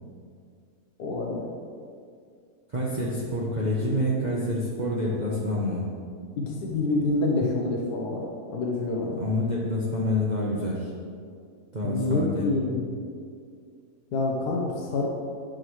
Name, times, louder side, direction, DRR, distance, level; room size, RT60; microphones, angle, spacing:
voice 1, 1.0-1.5 6.4-8.2 8.5-9.2 11.8-12.8 14.1-15.1, left 2 dB, 80° left, -1 dB, 1.4 m, -27 dB
voice 2, 2.7-5.9 9.2-10.9 11.7-12.5, left 1 dB, 35° right, -5 dB, 0.8 m, -27 dB
10.5 x 6.3 x 3.2 m, 2.2 s
omnidirectional pair, 1.7 m